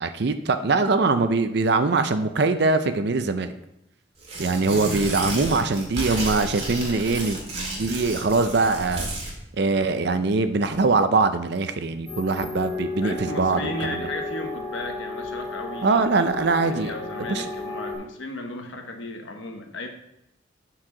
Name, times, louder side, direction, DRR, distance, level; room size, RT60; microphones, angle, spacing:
voice 1, 0.0-3.5 4.4-9.1 9.6-14.0 15.8-16.9 17.2-17.4, right 3 dB, 55° right, 9 dB, 0.5 m, -22 dB
Tearing, 4.2-9.3, right 2 dB, 30° right, 2.0 m, -32 dB
sound 1, 12.1-18.0, left 2 dB, 5° left, 3.5 m, -33 dB
voice 2, 13.0-16.1 16.6-19.9, left 2 dB, 75° left, 4 dB, 1.1 m, -35 dB
12.0 x 4.7 x 3.8 m, 0.84 s
head